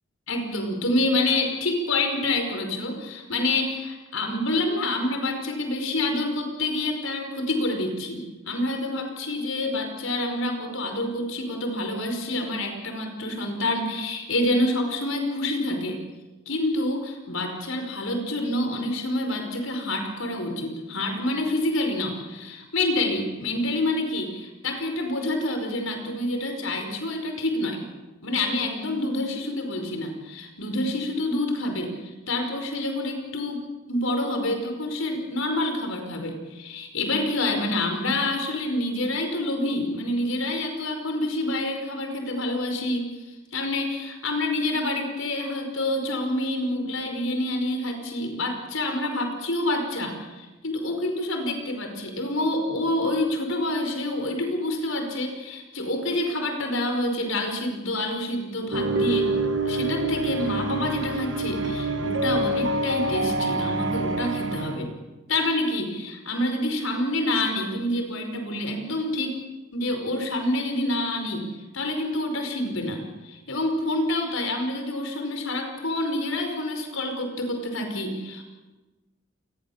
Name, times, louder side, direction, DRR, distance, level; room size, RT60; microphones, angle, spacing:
voice 1, 0.3-16.0 16.5-27.8 28.2-33.6 33.9-59.3 59.7-64.9 65.3-69.4 69.7-78.4, left 1 dB, 80° left, 5 dB, 5.2 m, -27 dB
sound 1, 58.7-64.8, right 2 dB, 65° right, 1.9 m, -26 dB
28.0 x 21.0 x 7.2 m, 1.2 s
head